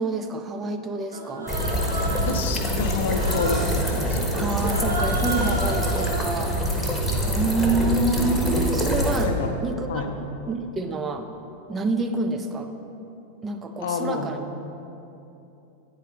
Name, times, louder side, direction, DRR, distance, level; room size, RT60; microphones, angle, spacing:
voice 1, 0.0-1.5 4.3-6.9 7.3-9.3 9.6-10.2 10.5-11.3 11.7-12.7 13.4-14.4, right 3 dB, 20° right, 6 dB, 0.4 m, -27 dB
Human voice, 1.1-2.5 3.1-3.8 4.6-6.3, right 1 dB, 85° right, 0.7 m, -32 dB
sound 1, 1.5-9.3, equal, 5° left, 1.0 m, -25 dB
voice 2, 2.2-4.2 9.2-9.5 9.9-10.1 13.8-14.3, left 5 dB, 55° left, 5 dB, 0.6 m, -28 dB
8.9 x 4.8 x 4.2 m, 2.9 s
figure-of-eight pair, 90°, 0 cm